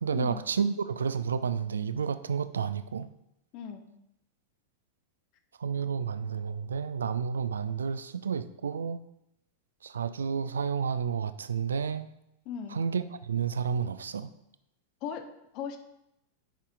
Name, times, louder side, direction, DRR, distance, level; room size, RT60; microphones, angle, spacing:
voice 1, 0.0-3.1 5.6-9.0 9.8-12.1 12.7-14.3, right 6 dB, 70° right, 14 dB, 0.3 m, -31 dB
voice 2, 3.5-3.9 12.5-12.8 15.0-15.8, left 7 dB, 40° left, 7 dB, 0.6 m, -38 dB
10.0 x 5.6 x 2.4 m, 0.82 s
figure-of-eight pair, 90°, 0 cm